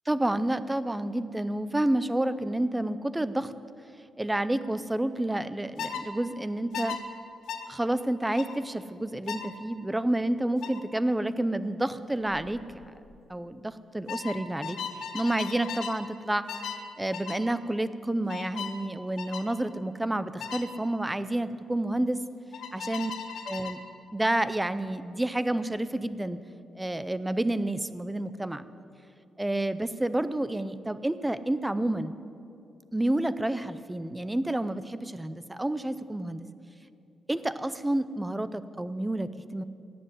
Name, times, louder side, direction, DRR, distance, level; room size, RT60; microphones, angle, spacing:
voice 1, 0.1-3.5 4.2-7.0 7.7-12.6 13.3-14.8 15.1-16.5 17.0-22.2 22.7-23.1 23.5-23.8 24.1-26.4 26.8-28.6 29.4-32.2 32.9-36.5 37.3-39.6, right 1 dB, 10° right, 13 dB, 0.5 m, -29 dB
sound 1, 5.8-6.0 6.7-7.0 7.5-7.7 8.4-8.6 9.3-9.5 10.6-10.8 12.3-12.5 12.8-13.2 14.1-16.0 16.5-16.8 17.1-17.4 18.3-18.8 19.2-19.5 20.4-20.7 22.5-23.8, left 7 dB, 75° left, 1.1 m, -37 dB
18.0 x 7.7 x 9.7 m, 2.6 s
wide cardioid pair, 165°, 0 cm